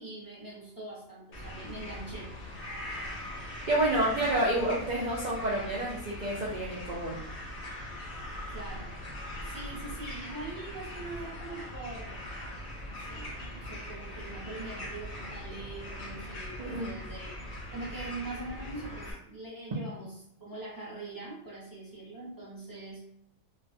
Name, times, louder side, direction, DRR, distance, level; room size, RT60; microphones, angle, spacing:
voice 1, 0.0-2.3 8.5-8.9 9.4-12.3 12.9-17.3 17.7-20.1 20.4-23.1, right 2 dB, 25° right, -7 dB, 0.5 m, -43 dB
sound 1, 1.3-19.1, left 1 dB, 50° left, 0.6 m, -41 dB
voice 2, 3.7-7.2 16.6-16.9, right 1 dB, 75° right, -4 dB, 0.4 m, -29 dB
2.3 x 2.1 x 2.5 m, 0.74 s
omnidirectional pair, 1.4 m